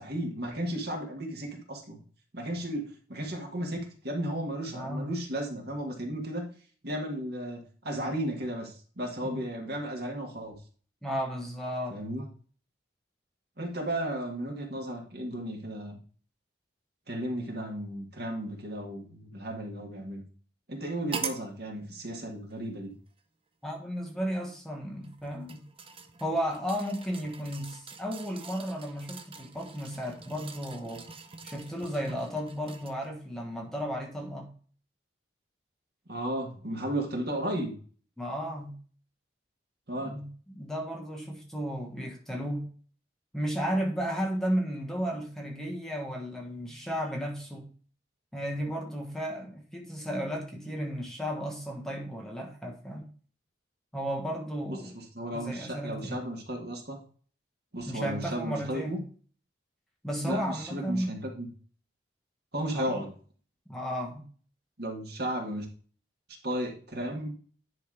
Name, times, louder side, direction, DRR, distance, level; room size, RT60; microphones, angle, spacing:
voice 1, 0.0-2.0 2.3-6.5 6.8-10.6 11.9-12.3 13.6-16.0 17.1-20.2 20.7-22.9 36.1-37.7 39.9-40.1 54.7-57.0 57.7-59.0 60.2-61.5 62.5-63.1 64.8-65.7 66.4-67.4, right 1 dB, 60° right, 1.8 m, -34 dB
voice 2, 4.7-5.2 9.2-9.4 11.0-12.0 23.6-25.6 26.2-31.1 31.4-34.5 38.2-38.8 40.0-42.7 43.3-47.7 48.3-53.1 53.9-54.9 55.3-56.2 57.9-59.0 60.0-61.1 62.7-63.0 63.7-64.3, equal, 5° left, 1.3 m, -34 dB
sound 1, 21.1-21.5 22.5-22.6 25.0-33.1 33.6-33.7, right 5 dB, 30° right, 0.8 m, -43 dB
10.0 x 3.4 x 4.8 m
head